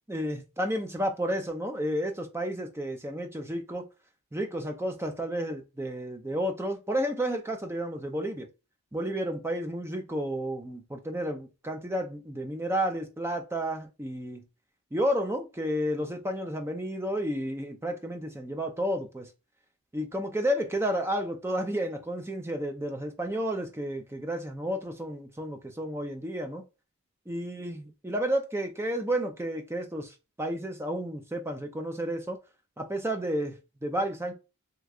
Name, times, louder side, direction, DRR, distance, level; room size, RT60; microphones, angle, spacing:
voice 1, 0.1-3.9 4.3-8.5 8.9-14.4 14.9-19.3 19.9-26.6 27.3-32.4 32.8-33.6 33.8-34.3, equal, 10° right, 0.5 m, -31 dB
3.5 x 3.0 x 2.4 m
head